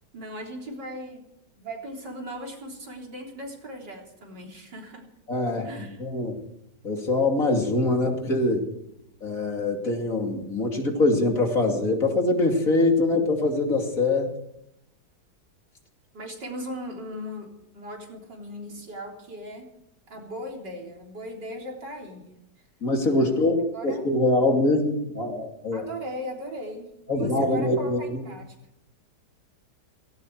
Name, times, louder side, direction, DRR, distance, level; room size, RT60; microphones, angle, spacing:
voice 1, 0.1-1.2 1.6-5.1 5.6-6.0 16.1-19.7 20.1-22.3 23.2-23.4 23.7-24.0 25.7-28.5, equal, 85° right, 0 dB, 4.2 m, -38 dB
voice 2, 5.3-6.4 6.8-8.6 9.2-14.3 22.8-25.9 27.1-28.2, left 2 dB, 50° left, 2 dB, 3.1 m, -24 dB
17.5 x 17.5 x 4.7 m, 0.81 s
omnidirectional pair, 1.8 m